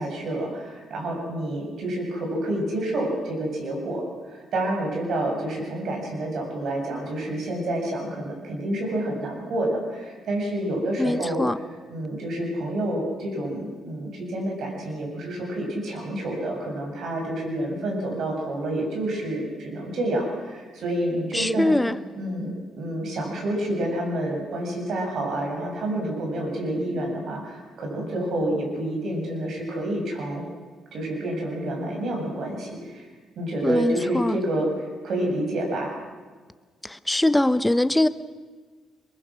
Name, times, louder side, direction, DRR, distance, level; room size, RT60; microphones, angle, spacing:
voice 1, 0.0-4.0 4.3-21.8 22.1-30.4 30.9-33.1 33.4-35.9, right 1 dB, 65° right, 8.0 m, -28 dB
voice 2, 11.0-11.6 21.3-22.0 33.6-34.4 36.8-38.1, left 1 dB, 10° left, 0.9 m, -22 dB
23.5 x 22.5 x 6.4 m
cardioid pair, 90°, 0 cm